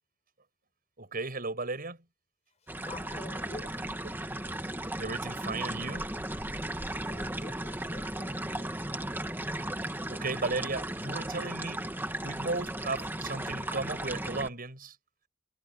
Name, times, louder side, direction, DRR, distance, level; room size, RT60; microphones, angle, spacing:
voice 1, 1.0-2.0 5.0-6.1 9.9-11.8 12.2-15.0, right 3 dB, 50° right, 7.0 m, -35 dB
sound 1, 2.7-14.5, right 1 dB, 10° right, 2.0 m, -36 dB
voice 2, 2.8-3.8 7.0-8.8, left 2 dB, 35° left, 4.8 m, -48 dB
head